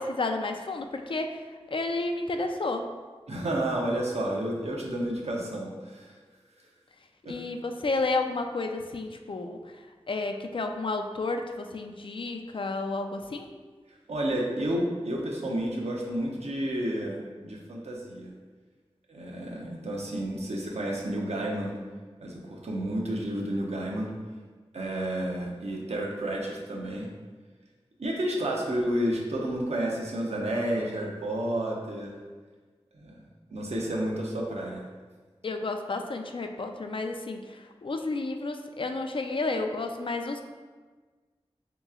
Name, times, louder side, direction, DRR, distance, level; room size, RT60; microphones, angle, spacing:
voice 1, 0.0-1.4 1.7-2.9 7.3-9.6 10.1-13.5 35.4-40.4, left 3 dB, 55° left, 5 dB, 0.3 m, -31 dB
voice 2, 3.3-6.1 7.2-7.4 14.1-18.3 19.1-21.8 22.2-24.1 24.7-27.1 28.0-32.1 32.9-33.2 33.5-34.8, right 1 dB, 85° right, -2 dB, 0.6 m, -31 dB
3.1 x 2.9 x 3.6 m, 1.4 s
wide cardioid pair, 45°, 11 cm